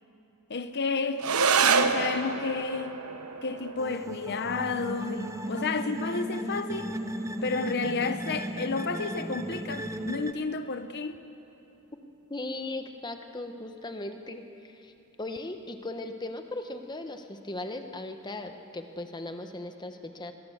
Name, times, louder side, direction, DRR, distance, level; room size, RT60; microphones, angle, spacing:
voice 1, 0.5-1.3 1.6-2.9 3.4-6.9 7.4-11.2, left 4 dB, 50° left, 0.8 m, -31 dB
sound 1, 1.2-10.2, right 5 dB, 85° right, 1.2 m, -31 dB
sound 2, 3.8-10.3, right 1 dB, 15° right, 0.7 m, -35 dB
voice 2, 12.3-14.9 15.2-20.3, left 2 dB, 20° left, 1.2 m, -38 dB
23.0 x 21.0 x 7.3 m
head